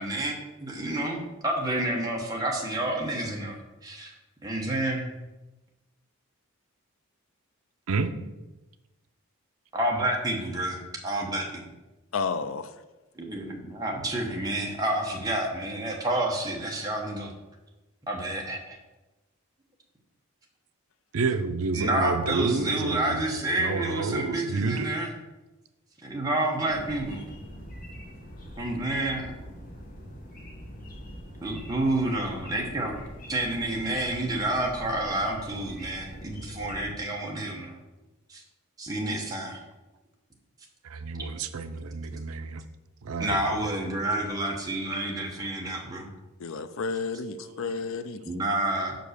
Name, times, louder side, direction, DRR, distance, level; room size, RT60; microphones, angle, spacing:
voice 1, 0.0-3.6 3.8-4.1 4.4-5.1 9.7-11.6 13.1-17.3 18.1-18.8 21.7-25.1 26.0-27.3 28.6-29.3 31.4-32.9 33.3-37.7 38.3-38.4 38.8-39.6 43.2-46.1 48.3-49.0, right 1 dB, 15° right, -1 dB, 1.1 m, -29 dB
voice 2, 12.1-12.7 46.4-48.2, left 4 dB, 65° left, 11 dB, 0.5 m, -31 dB
voice 3, 21.1-23.2 23.6-24.9 40.8-42.6 43.0-43.7 47.4-47.8 48.2-48.3, right 4 dB, 75° right, 11 dB, 0.5 m, -30 dB
sound 1, 26.7-37.0, equal, 40° left, 1.1 m, -43 dB
5.5 x 5.2 x 6.5 m, 1.1 s
head